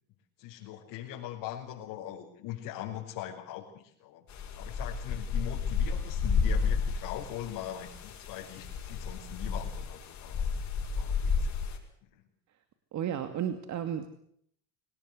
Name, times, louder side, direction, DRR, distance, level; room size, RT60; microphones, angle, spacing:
voice 1, 0.4-4.2 4.5-10.7 11.0-11.5 12.1-12.2, left 12 dB, 70° left, -5 dB, 5.9 m, -41 dB
sound 1, 4.3-11.8, left 5 dB, 50° left, 6.4 m, -32 dB
voice 2, 12.9-14.1, right 9 dB, 50° right, 8 dB, 2.5 m, -33 dB
23.5 x 19.0 x 8.1 m, 0.67 s
supercardioid pair, 105°, 36 cm